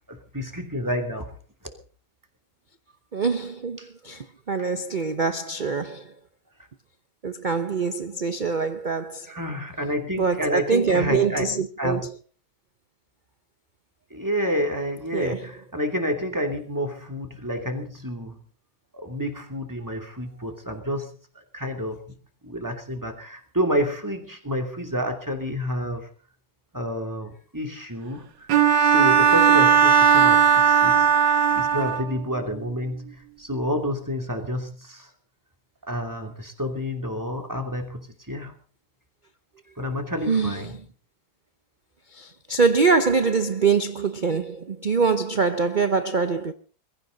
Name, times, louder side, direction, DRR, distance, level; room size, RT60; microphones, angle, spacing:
voice 1, 0.1-1.3 3.8-3.9 4.6-4.7 9.3-11.5 11.8-12.1 14.1-18.4 18.9-21.1 21.3-22.0 22.4-26.1 26.7-28.5 28.8-35.1 35.8-38.5 39.8-40.7, equal, 10° right, 2.8 m, -29 dB
voice 2, 3.1-6.1 7.2-9.3 10.2-12.1 15.1-15.4 40.3-40.7 42.1-46.5, right 5 dB, 45° right, 0.6 m, -24 dB
Bowed string instrument, 28.5-32.2, right 8 dB, 80° right, 1.8 m, -17 dB
22.5 x 15.0 x 4.0 m
omnidirectional pair, 1.9 m